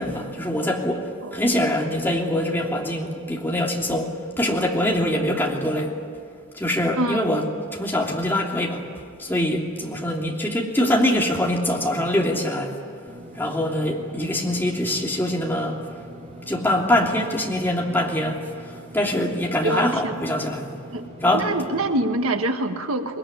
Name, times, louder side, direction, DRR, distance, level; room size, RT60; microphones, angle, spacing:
voice 1, 0.0-6.0 6.5-7.4 7.8-8.8 9.2-12.7 13.4-15.8 16.5-18.4 18.9-20.7 21.2-21.5, left 1 dB, 10° left, -1 dB, 3.0 m, -23 dB
voice 2, 1.2-1.6 7.0-7.4 19.6-20.2 20.9-21.1 21.3-23.2, right 2 dB, 85° right, 6 dB, 1.6 m, -25 dB
Engine / Mechanisms, 13.1-22.0, right 1 dB, 35° right, 3.5 m, -42 dB
22.0 x 21.5 x 10.0 m, 2.2 s
head